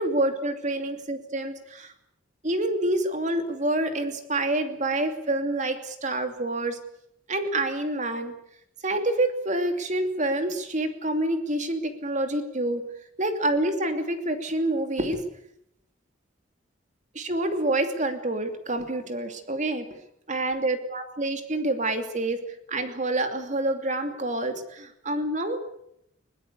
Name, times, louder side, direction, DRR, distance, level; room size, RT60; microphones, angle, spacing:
voice 1, 0.0-1.9 2.4-6.8 7.3-8.3 8.8-12.8 13.2-15.2 17.1-20.0 20.3-22.4 22.7-25.6, right 1 dB, 40° right, 7 dB, 2.8 m, -27 dB
22.0 x 20.0 x 8.4 m, 0.75 s
head